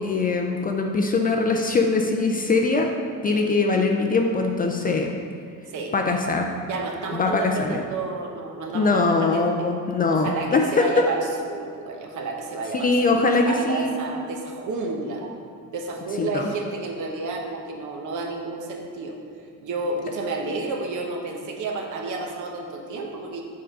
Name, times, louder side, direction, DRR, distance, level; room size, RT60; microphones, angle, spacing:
voice 1, 0.0-2.9 3.2-5.1 5.9-6.5 7.1-7.8 8.7-10.8 12.7-13.9 16.2-16.5, left 3 dB, 25° left, 2 dB, 0.3 m, -22 dB
voice 2, 3.3-3.7 5.7-5.9 6.7-9.5 10.1-15.4 15.7-19.2 19.6-23.4, right 3 dB, 60° right, 1 dB, 1.0 m, -31 dB
6.7 x 3.8 x 5.3 m, 2.3 s
cardioid pair, 145°, 34 cm